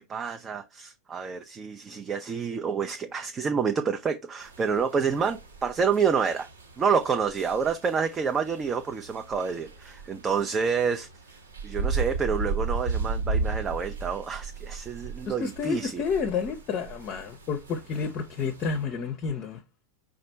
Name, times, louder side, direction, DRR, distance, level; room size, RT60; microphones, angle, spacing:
voice 1, 0.0-6.5 6.8-11.1 11.6-16.0, right 6 dB, 20° right, 0.4 m, -28 dB
sound 1, 4.4-18.8, right 4 dB, 65° right, 1.2 m, -35 dB
voice 2, 15.2-19.6, left 5 dB, 35° left, 0.6 m, -30 dB
5.1 x 2.4 x 4.3 m
figure-of-eight pair, 90°, 0 cm